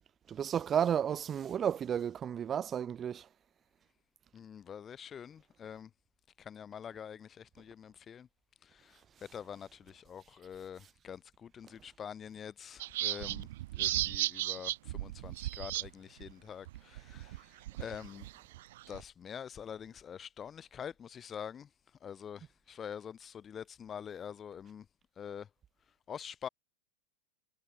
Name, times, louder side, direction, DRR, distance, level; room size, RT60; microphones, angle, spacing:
voice 1, 0.3-3.3, right 8 dB, 25° right, 7.3 m, -32 dB
voice 2, 4.3-5.9 6.4-8.3 8.6-13.5 13.8-17.4 17.8-18.3 18.9-21.7 22.0-24.8 25.2-25.5 26.1-26.5, left 8 dB, 25° left, 7.8 m, -46 dB
sound 1, 12.8-15.9 16.2-16.3 16.7-19.0, right 16 dB, 55° right, 7.5 m, -35 dB
figure-of-eight pair, 90°, 0 cm